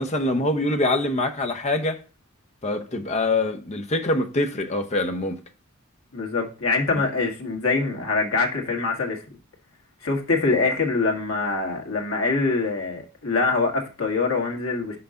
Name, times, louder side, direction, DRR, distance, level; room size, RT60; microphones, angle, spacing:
voice 1, 0.0-2.0 2.6-5.4, left 2 dB, 30° left, 0.8 m, -24 dB
voice 2, 6.1-9.2 10.0-15.0, left 3 dB, 75° left, 1.8 m, -24 dB
5.8 x 5.6 x 3.7 m
head